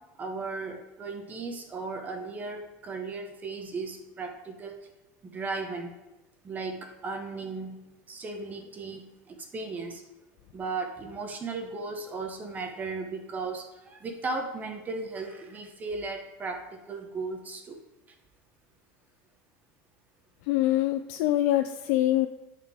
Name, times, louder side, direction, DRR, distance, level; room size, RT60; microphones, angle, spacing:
voice 1, 0.2-4.7 5.2-5.9 6.4-7.8 8.1-10.0 10.5-17.8, right 3 dB, 25° right, 4 dB, 0.8 m, -36 dB
voice 2, 20.5-22.3, left 14 dB, 80° left, 9 dB, 0.4 m, -24 dB
12.0 x 4.2 x 3.5 m, 1.0 s
cardioid pair, 140°, 7 cm